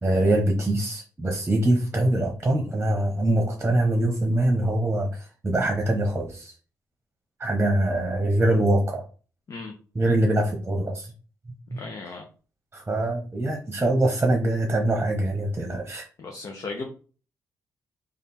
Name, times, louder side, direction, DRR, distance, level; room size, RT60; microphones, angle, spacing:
voice 1, 0.0-6.5 7.4-9.0 9.9-11.1 11.7-11.8 12.7-16.1, right 1 dB, 20° right, 1 dB, 1.0 m, -23 dB
voice 2, 11.7-12.2 16.2-16.9, left 3 dB, 50° left, 1 dB, 0.8 m, -36 dB
3.4 x 2.5 x 4.1 m, 0.37 s
cardioid pair, 60°, 7 cm